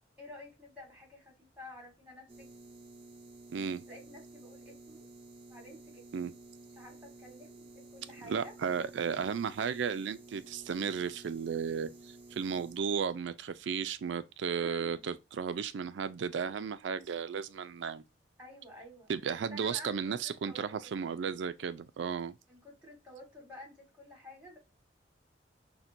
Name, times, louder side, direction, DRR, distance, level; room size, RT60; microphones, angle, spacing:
voice 1, 0.2-2.5 3.9-5.1 5.5-6.1 6.6-8.5 14.5-15.1 18.4-19.1 19.5-21.0 22.5-24.6, equal, 5° right, 1.6 m, -51 dB
sound 1, 2.3-12.8, right 2 dB, 30° right, 0.6 m, -53 dB
voice 2, 3.5-3.8 6.1-6.3 8.2-18.0 19.1-22.3, right 6 dB, 80° right, 0.4 m, -34 dB
5.7 x 2.2 x 2.5 m
head